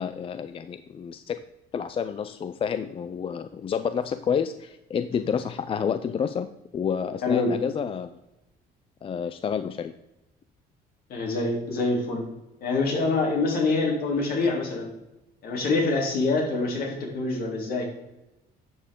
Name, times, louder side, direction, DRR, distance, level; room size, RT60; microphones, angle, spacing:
voice 1, 0.0-1.4 1.7-8.1 9.0-9.9, left 7 dB, 35° left, 12 dB, 0.4 m, -29 dB
voice 2, 7.2-7.5 11.1-12.2 12.6-14.9 15.4-17.9, left 3 dB, 65° left, 0 dB, 3.1 m, -25 dB
11.5 x 6.8 x 3.7 m, 0.95 s
cardioid pair, 110°, 17 cm